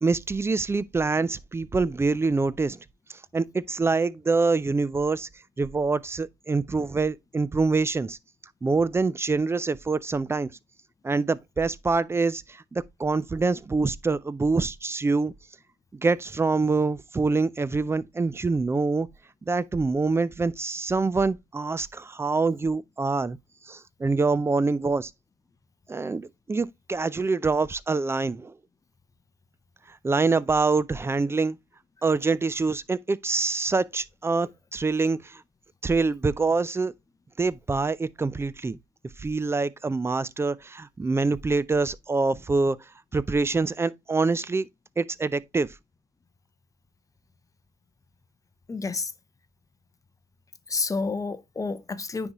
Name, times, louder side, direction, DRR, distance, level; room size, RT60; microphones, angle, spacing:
voice 1, 0.0-2.8 3.1-5.3 5.6-8.2 8.6-10.5 11.0-15.3 15.9-19.1 19.4-23.4 23.7-25.1 25.9-28.5 29.9-31.6 32.0-35.4 35.8-36.9 37.4-38.8 39.2-42.8 43.1-44.7 45.0-45.7, right 3 dB, 15° right, 0.4 m, -25 dB
voice 2, 48.7-49.1 50.7-52.3, left 4 dB, 20° left, 0.7 m, -29 dB
9.5 x 3.8 x 2.9 m
cardioid pair, 110°, 17 cm